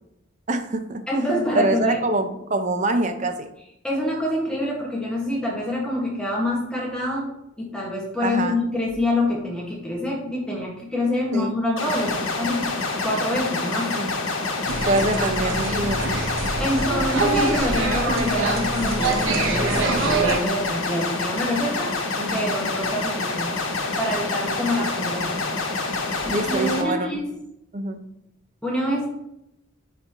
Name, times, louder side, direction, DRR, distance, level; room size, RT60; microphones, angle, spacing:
voice 1, 0.5-1.0 1.5-3.5 8.2-8.6 11.3-11.5 13.9-14.1 14.9-16.2 22.2-22.5 26.3-27.2 27.7-28.0, right 2 dB, 35° right, 8 dB, 0.6 m, -25 dB
voice 2, 1.1-2.0 3.8-7.3 7.6-12.7 13.0-13.9 16.6-21.9 22.2-23.7 24.0-25.4 26.2-27.3 28.6-29.1, left 1 dB, 5° left, -4 dB, 1.5 m, -26 dB
sound 1, 11.8-26.8, left 3 dB, 85° left, 1.2 m, -27 dB
sound 2, 14.6-20.4, right 3 dB, 75° right, 1.0 m, -25 dB
9.7 x 4.2 x 2.9 m, 0.81 s
head